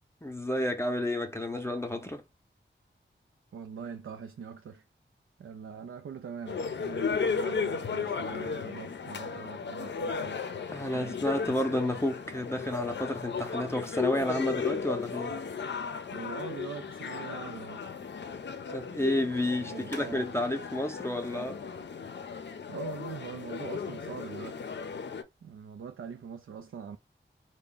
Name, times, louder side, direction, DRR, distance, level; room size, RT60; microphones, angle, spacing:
voice 1, 0.2-2.2 10.7-15.4 18.7-21.6, left 1 dB, 15° left, 0.6 m, -31 dB
voice 2, 3.5-4.8 5.4-10.5 10.8-11.2 16.1-17.9 19.6-20.3 22.7-24.7 25.4-27.0, right 6 dB, 90° right, 0.4 m, -43 dB
sound 1, 6.5-25.2, left 5 dB, 60° left, 0.5 m, -35 dB
3.4 x 2.1 x 3.7 m
wide cardioid pair, 95°, 20 cm